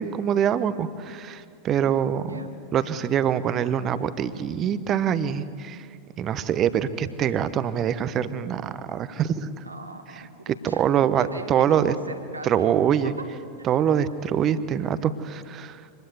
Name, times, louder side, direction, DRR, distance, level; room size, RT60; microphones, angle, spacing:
voice 1, 0.0-2.4 2.7-5.8 6.2-9.5 10.6-11.9 12.4-13.1 13.6-15.8, right 9 dB, 30° right, 14 dB, 1.0 m, -24 dB
voice 2, 2.2-2.5 9.6-10.8 11.2-12.8 13.0-13.2 13.6-13.8, right 2 dB, 85° right, 4 dB, 2.2 m, -39 dB
25.0 x 20.5 x 8.2 m, 2.3 s
figure-of-eight pair, 90°, 0 cm